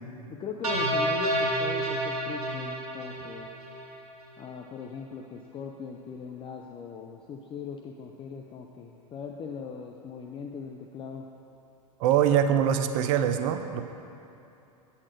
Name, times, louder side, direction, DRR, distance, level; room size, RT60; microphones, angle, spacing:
voice 1, 0.3-3.5 4.4-11.3, left 6 dB, 25° left, 2 dB, 0.5 m, -40 dB
sound 1, 0.6-4.0, right 1 dB, 85° right, 1.6 m, -29 dB
voice 2, 12.0-13.8, right 9 dB, 60° right, 8 dB, 0.5 m, -23 dB
8.7 x 4.3 x 6.5 m, 2.8 s
hypercardioid pair, 100°, 20 cm